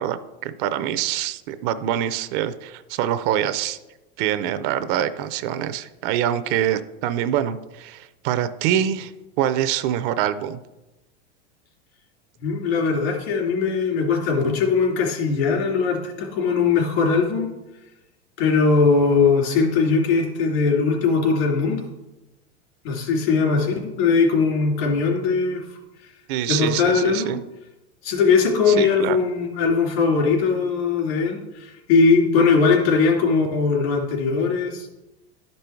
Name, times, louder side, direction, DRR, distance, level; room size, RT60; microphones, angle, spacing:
voice 1, 0.0-3.8 4.2-9.1 9.4-10.6 26.3-27.4 28.7-29.2, right 10 dB, 50° right, 12 dB, 0.5 m, -25 dB
voice 2, 12.4-17.5 18.4-21.8 22.8-25.6 26.5-27.3 28.0-34.9, left 4 dB, 65° left, -1 dB, 3.2 m, -20 dB
11.5 x 5.4 x 4.5 m, 1.0 s
supercardioid pair, 140°, 33 cm